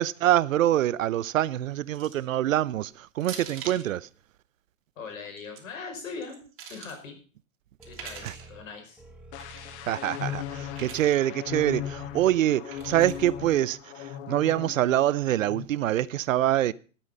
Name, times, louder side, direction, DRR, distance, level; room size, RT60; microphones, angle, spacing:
voice 1, 0.0-4.1 8.2-8.3 9.9-16.7, right 13 dB, 70° right, 0.7 m, -25 dB
sound 1, 1.9-2.3 3.2-3.9 5.2-5.6 6.2-7.0 7.8-8.5 9.4-9.8 10.7-11.2 12.7-13.3, right 7 dB, 30° right, 3.1 m, -43 dB
voice 2, 5.0-6.4 6.7-7.2 7.8-9.0, left 5 dB, 75° left, 5.4 m, -40 dB
sound 2, 7.8-13.6, right 2 dB, 5° right, 2.1 m, -50 dB
sound 3, 9.3-15.0 15.3-15.6, left 11 dB, 55° left, 1.1 m, -38 dB
13.0 x 8.9 x 5.5 m
hypercardioid pair, 125°, 41 cm